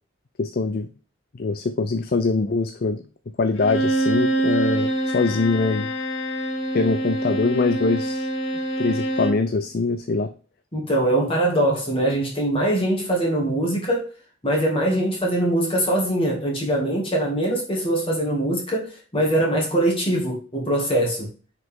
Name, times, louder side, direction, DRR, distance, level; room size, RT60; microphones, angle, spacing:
voice 1, 0.4-0.9 1.3-3.0 3.4-5.9 6.7-8.3 8.8-10.3, left 3 dB, 50° left, 0.5 m, -23 dB
Bowed string instrument, 3.6-9.5, right 1 dB, 75° left, 1.2 m, -25 dB
voice 2, 10.7-14.1 14.4-21.3, right 1 dB, 30° left, 2.1 m, -22 dB
6.4 x 5.0 x 3.6 m
head